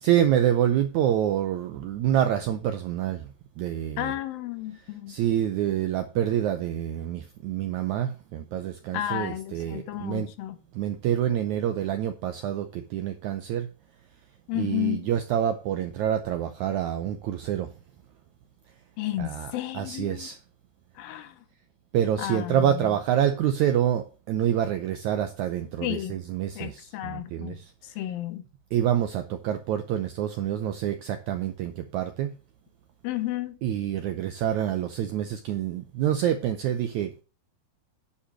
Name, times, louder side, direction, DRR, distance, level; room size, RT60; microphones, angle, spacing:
voice 1, 0.0-3.3 3.6-4.1 5.1-10.3 10.7-13.7 14.6-17.7 19.2-20.4 21.9-27.7 28.7-32.3 33.6-37.2, right 10 dB, 80° right, 1.7 m, -27 dB
voice 2, 4.0-5.2 8.9-10.6 14.5-15.1 19.0-20.3 21.0-21.4 22.2-23.0 25.8-26.2 26.6-27.6 28.0-28.5 33.0-33.6, left 13 dB, 80° left, 2.7 m, -32 dB
9.9 x 5.6 x 6.2 m
omnidirectional pair, 4.3 m